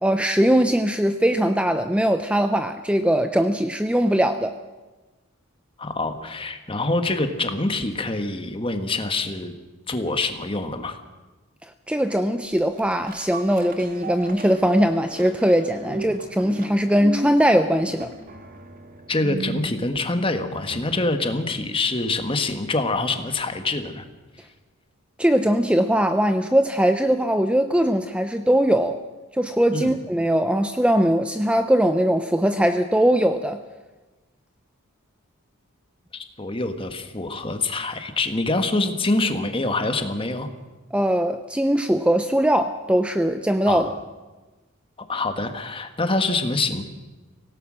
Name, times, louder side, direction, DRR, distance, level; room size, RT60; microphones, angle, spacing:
voice 1, 0.0-4.6 11.9-18.1 25.2-29.0 29.3-33.6 40.9-43.9, equal, 5° right, 8 dB, 0.6 m, -20 dB
voice 2, 5.8-9.5 9.9-11.0 16.0-16.1 19.1-24.0 29.7-29.9 36.1-40.5 43.7-44.0 45.1-46.8, left 2 dB, 25° left, 7 dB, 1.6 m, -25 dB
sound 1, 12.6-21.1 21.6-21.7, right 2 dB, 40° right, 2.0 m, -36 dB
24.5 x 17.5 x 6.4 m, 1.2 s
head